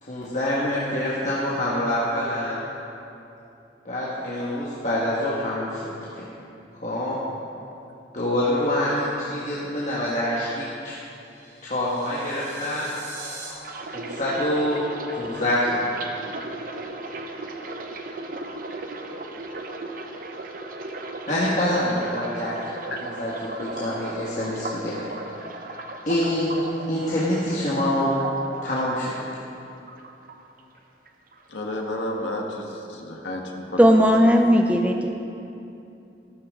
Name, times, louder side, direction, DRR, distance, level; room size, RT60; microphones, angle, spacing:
voice 1, 0.0-2.6 3.8-5.8 6.2-6.3 6.7-7.1 8.1-10.9 11.6-12.9 13.9-14.8 15.1-15.9 21.3-22.5 23.0-23.3 23.6-25.1 26.1-26.6 26.9-28.1 28.6-29.1, left 1 dB, 40° left, -7 dB, 1.6 m, -25 dB
sound 1, 11.0-13.5, right 3 dB, 80° right, 3.1 m, -42 dB
sound 2, 13.6-29.6 29.9-30.8 31.1-31.4, right 2 dB, 50° right, 0.8 m, -36 dB
voice 2, 31.5-34.1, left 1 dB, 85° left, 0 dB, 1.5 m, -31 dB
voice 3, 33.8-35.1, equal, 10° right, 3 dB, 0.5 m, -17 dB
14.0 x 12.5 x 3.8 m, 2.8 s
head